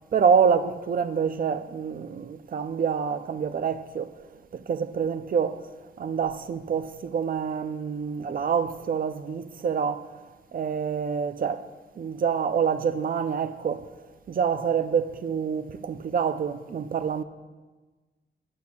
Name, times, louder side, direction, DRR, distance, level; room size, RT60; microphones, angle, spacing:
voice 1, 0.1-4.1 4.5-5.6 6.0-10.1 10.5-11.7 12.0-13.9 14.3-17.2, right 6 dB, 45° right, 0.4 m, -26 dB
20.0 x 9.8 x 2.3 m
wide cardioid pair, 180°, 20 cm